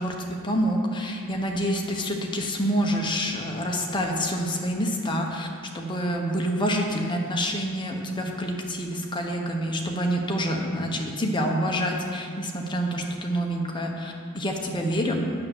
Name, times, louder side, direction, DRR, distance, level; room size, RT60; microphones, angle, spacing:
voice 1, 0.0-5.5 5.7-15.3, equal, 20° left, 1 dB, 1.0 m, -27 dB
8.7 x 6.5 x 7.7 m, 2.3 s
head